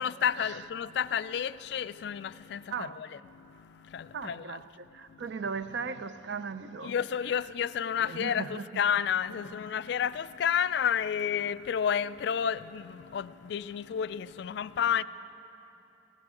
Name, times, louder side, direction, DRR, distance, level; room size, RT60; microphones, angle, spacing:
voice 1, 0.0-4.6 5.1-5.2 6.8-15.0, left 8 dB, 60° left, 0.3 m, -31 dB
voice 2, 2.7-3.0 4.1-6.9 8.1-8.8, right 5 dB, 65° right, 0.5 m, -37 dB
19.5 x 18.0 x 3.8 m
head